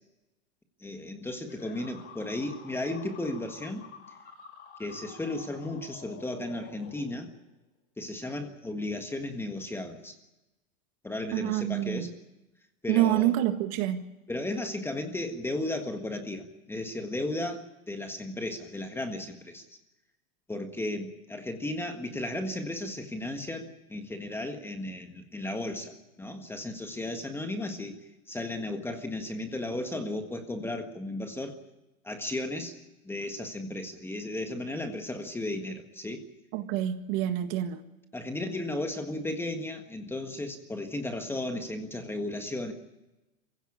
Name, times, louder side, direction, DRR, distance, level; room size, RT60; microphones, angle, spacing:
voice 1, 0.8-3.8 4.8-7.3 8.0-10.1 11.0-12.1 12.8-13.3 14.3-19.6 20.5-27.9 28.3-31.6 32.0-32.7 33.0-36.2 38.1-42.7, left 1 dB, 5° left, 5 dB, 1.6 m, -35 dB
sound 1, 1.5-7.5, left 6 dB, 25° left, 5.7 m, -49 dB
voice 2, 11.3-12.1 12.9-14.0 36.5-37.8, right 13 dB, 40° right, 8 dB, 1.7 m, -27 dB
23.5 x 16.0 x 8.6 m, 1.0 s
supercardioid pair, 150°, 42 cm